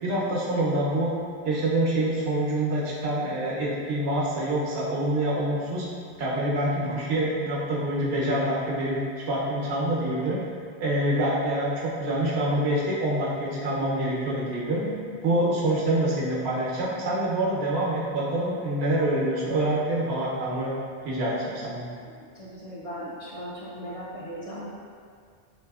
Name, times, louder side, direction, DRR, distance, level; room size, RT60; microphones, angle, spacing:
voice 1, 0.0-1.1 1.4-5.9 6.2-9.0 9.3-10.4 10.8-14.8 15.2-20.7 21.0-21.9, right 1 dB, 85° right, -5 dB, 1.0 m, -26 dB
voice 2, 22.3-24.7, equal, 50° left, -8 dB, 0.4 m, -38 dB
3.2 x 3.0 x 2.3 m, 2.2 s
omnidirectional pair, 1.0 m